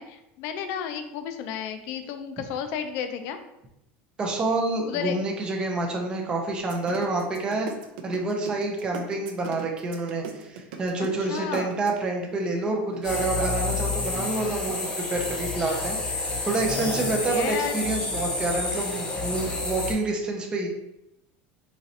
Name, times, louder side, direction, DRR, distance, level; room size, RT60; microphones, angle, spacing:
voice 1, 0.0-3.4 4.8-5.2 11.0-11.8 17.3-17.8, left 8 dB, 50° left, 8 dB, 0.4 m, -32 dB
voice 2, 4.2-7.7 8.0-20.7, right 2 dB, 15° right, 1 dB, 0.5 m, -28 dB
sound 1, 6.6-12.1 12.9-13.6, right 6 dB, 80° right, 0.5 m, -37 dB
sound 2, 13.0-19.9, left 3 dB, 15° left, 0.8 m, -29 dB
4.0 x 3.0 x 2.7 m, 0.85 s
cardioid pair, 170°, 5 cm